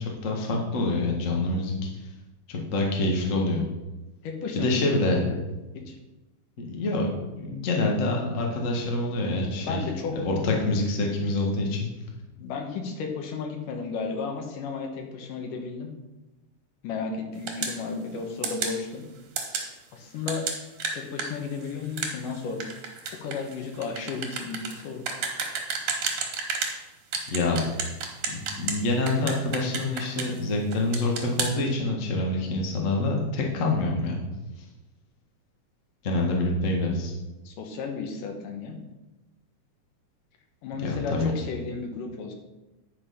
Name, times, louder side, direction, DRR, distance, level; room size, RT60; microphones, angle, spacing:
voice 1, 0.0-1.9 2.5-3.6 4.5-5.2 6.6-7.1 7.4-9.8 10.1-11.9 27.3-27.6 28.3-34.2 36.0-37.1 40.8-41.3, left 2 dB, 40° left, 0 dB, 1.2 m, -26 dB
voice 2, 4.2-5.2 5.7-6.0 9.6-10.1 12.4-15.9 16.8-19.0 19.9-20.5 20.9-22.6 23.2-25.0 37.4-38.8 40.6-42.3, left 4 dB, 85° left, 4 dB, 2.8 m, -33 dB
sound 1, 17.5-17.8 18.4-18.8 19.4-19.7 20.3-26.8 27.1-28.8 29.1-30.4 30.7-31.5, right 5 dB, 80° right, 3.1 m, -31 dB
10.0 x 5.4 x 5.7 m, 1.0 s
omnidirectional pair, 3.7 m